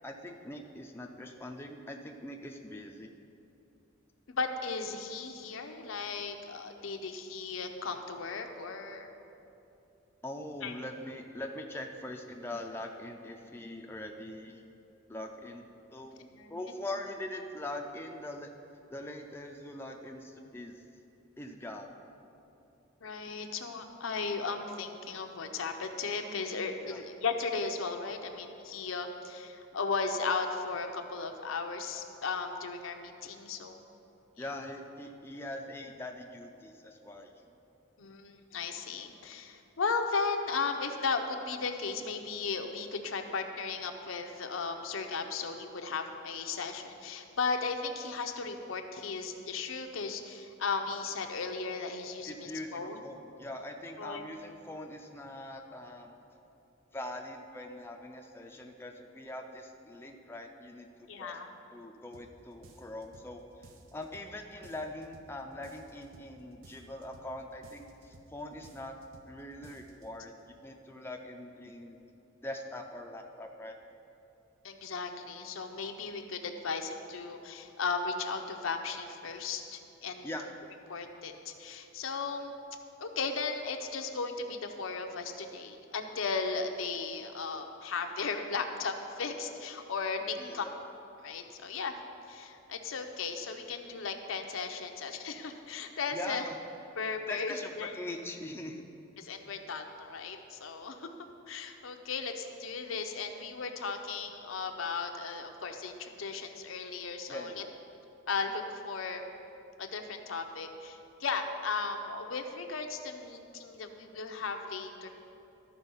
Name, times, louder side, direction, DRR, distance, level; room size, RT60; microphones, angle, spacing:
voice 1, 0.0-3.1 10.2-14.6 15.1-18.5 18.9-20.8 21.4-21.9 26.8-27.0 34.4-37.5 52.2-56.2 56.9-61.4 61.7-69.0 69.3-72.0 72.4-73.8 80.2-80.5 90.4-90.8 96.1-96.6 97.3-98.8 107.3-107.7, left 1 dB, 10° left, 2 dB, 0.4 m, -42 dB
voice 2, 4.3-9.1 10.6-10.7 16.3-16.6 23.0-33.9 34.4-34.5 38.0-53.0 54.0-54.3 61.1-61.5 74.6-80.3 80.9-82.5 83.0-90.7 91.2-92.0 92.3-96.4 97.0-97.9 99.2-101.1 101.5-107.6 108.3-109.2 109.8-115.1, left 4 dB, 80° left, 5 dB, 0.7 m, -36 dB
sound 1, 62.1-62.3 62.6-63.3 63.6-64.3 64.6-65.3 65.6-66.3 66.6-67.3 67.6-68.3 68.6-69.3 69.6-70.1, right 2 dB, 80° right, 0.8 m, -56 dB
13.0 x 4.5 x 5.5 m, 2.8 s
head